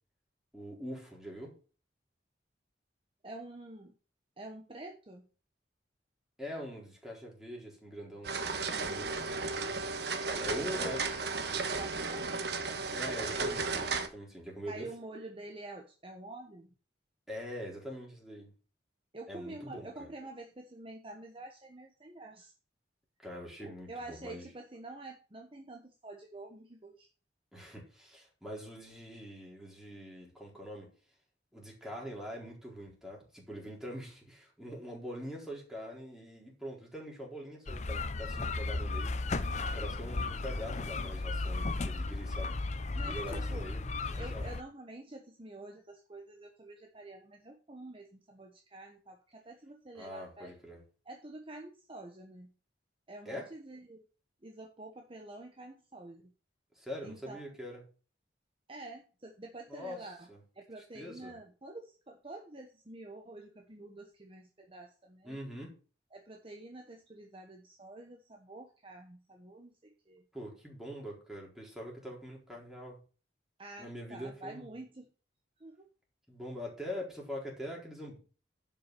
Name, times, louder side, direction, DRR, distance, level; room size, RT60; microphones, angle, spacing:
voice 1, 0.5-1.5 6.4-9.5 10.4-11.2 12.9-14.9 17.3-18.5 19.3-20.1 23.2-24.5 27.5-30.9 31.5-39.4 39.7-42.6 43.0-44.5 49.9-50.8 53.2-53.5 56.7-57.8 59.7-60.4 60.8-61.4 65.2-65.7 70.3-73.0 73.8-74.7 76.3-78.2, equal, ahead, -3 dB, 4.1 m, -44 dB
voice 2, 3.2-3.9 4.4-5.3 10.2-10.9 11.7-12.5 14.7-16.7 19.1-22.5 23.6-27.1 42.9-43.7 44.2-50.5 51.1-52.5 53.1-54.0 54.4-56.3 57.0-57.4 58.7-60.3 60.5-65.4 66.1-70.2 73.6-75.1 75.6-75.9, right 2 dB, 30° right, 2 dB, 1.1 m, -48 dB
sound 1, 8.2-14.1, right 4 dB, 60° right, 1.3 m, -34 dB
sound 2, 37.7-44.6, left 3 dB, 40° left, 0.7 m, -35 dB
11.5 x 5.8 x 5.9 m, 0.37 s
head